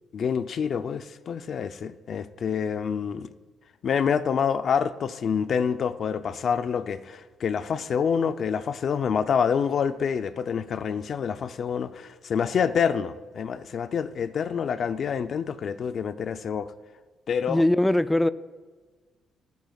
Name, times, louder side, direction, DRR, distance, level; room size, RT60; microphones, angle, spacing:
voice 1, 0.1-3.3 3.8-16.7 17.3-17.6, left 7 dB, 55° left, 0.6 m, -27 dB
voice 2, 17.5-18.3, left 1 dB, 10° left, 0.5 m, -21 dB
27.0 x 9.4 x 2.4 m
cardioid pair, 90°, 0 cm